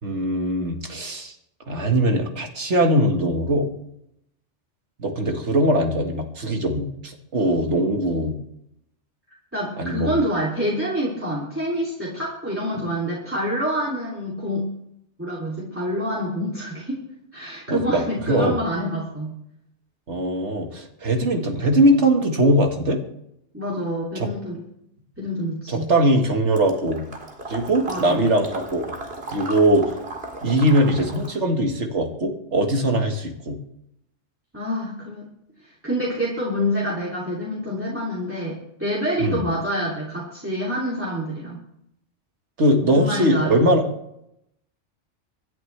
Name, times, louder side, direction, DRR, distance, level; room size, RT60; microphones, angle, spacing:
voice 1, 0.0-1.3 1.7-3.7 5.0-8.4 9.8-10.2 17.7-18.0 18.3-18.6 20.1-23.0 24.2-24.3 25.7-27.1 27.5-28.9 29.3-29.9 30.4-33.6 39.2-39.4 42.6-43.8, right 1 dB, 70° right, 3 dB, 2.1 m, -21 dB
voice 2, 9.5-14.6 15.2-17.0 17.3-19.4 23.5-24.6 25.2-25.9 27.9-28.2 34.5-35.3 35.8-41.6 42.8-43.6, equal, 10° right, -6 dB, 2.9 m, -27 dB
Water / Liquid, 26.6-31.4, right 2 dB, 55° right, 2.4 m, -36 dB
25.5 x 10.5 x 3.4 m, 0.78 s
omnidirectional pair, 1.2 m